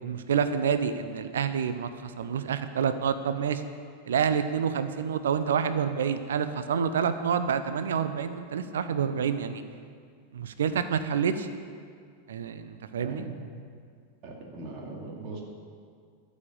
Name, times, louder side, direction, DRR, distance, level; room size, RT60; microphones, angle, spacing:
voice 1, 0.0-3.6 4.1-9.6 10.3-11.5 12.3-13.2, right 7 dB, 65° right, 11 dB, 0.6 m, -28 dB
voice 2, 13.0-13.4 14.2-15.4, right 3 dB, 40° right, -1 dB, 2.5 m, -39 dB
12.5 x 7.3 x 8.5 m, 2.1 s
figure-of-eight pair, 90°, 0 cm